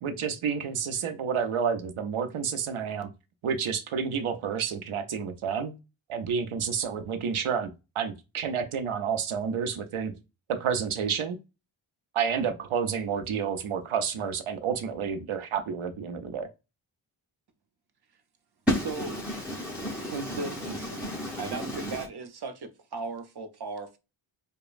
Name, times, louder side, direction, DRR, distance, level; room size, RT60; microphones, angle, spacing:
voice 1, 0.0-3.1 3.4-5.8 6.1-7.7 8.0-10.1 10.5-11.4 12.1-16.5, right 7 dB, 85° right, 0.7 m, -30 dB
voice 2, 18.7-22.1, left 1 dB, 5° right, 0.7 m, -32 dB
voice 3, 20.1-21.0 21.4-24.0, right 4 dB, 55° right, 0.8 m, -36 dB
4.9 x 2.2 x 2.4 m
wide cardioid pair, 110°, 48 cm